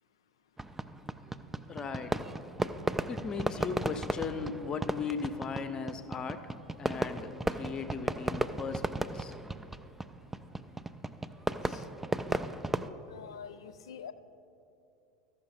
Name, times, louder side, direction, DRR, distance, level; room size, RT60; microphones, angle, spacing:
Fireworks, 0.6-12.9, right 2 dB, 10° right, 0.3 m, -35 dB
voice 1, 1.7-2.2 3.1-9.3, left 5 dB, 30° left, 9 dB, 0.6 m, -37 dB
voice 2, 13.1-14.1, left 7 dB, 70° left, 10 dB, 0.3 m, -46 dB
13.5 x 5.8 x 4.0 m, 2.7 s
figure-of-eight pair, 75°, 3 cm